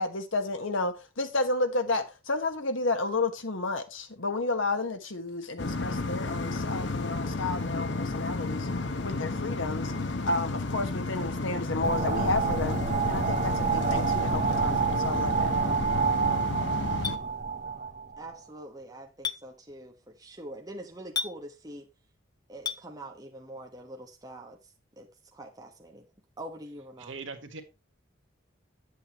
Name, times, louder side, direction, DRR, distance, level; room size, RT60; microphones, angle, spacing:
voice 1, 0.0-8.7 9.0-9.9 10.2-12.8 13.1-15.5, left 2 dB, 75° left, 1.4 m, -31 dB
sound 1, 5.6-17.2, left 3 dB, 60° left, 0.9 m, -32 dB
sound 2, 11.8-18.2, right 5 dB, 35° right, 0.8 m, -28 dB
Chink clink, 17.0-17.2 19.2-19.4 21.2-21.3 22.7-22.8, left 5 dB, 20° left, 0.5 m, -30 dB
voice 2, 18.2-21.9 22.5-24.6 25.0-26.1 26.4-27.1, right 1 dB, 20° right, 1.2 m, -44 dB
voice 3, 27.0-27.6, right 4 dB, 70° right, 1.5 m, -40 dB
8.8 x 8.1 x 3.0 m
head